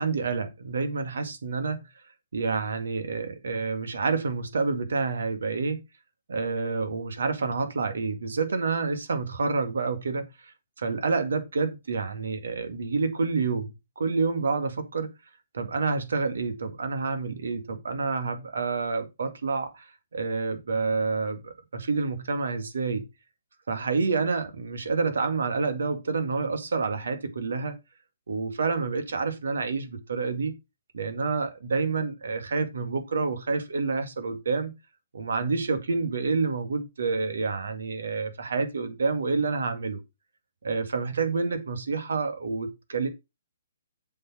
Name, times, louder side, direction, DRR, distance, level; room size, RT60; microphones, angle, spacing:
voice 1, 0.0-1.8 2.3-5.8 6.3-10.2 10.8-15.1 15.5-23.1 23.7-27.8 28.3-30.5 30.9-34.7 35.1-40.0 40.6-43.1, right 4 dB, 60° right, 2.1 m, -28 dB
7.5 x 7.0 x 4.4 m
figure-of-eight pair, 125°, 0 cm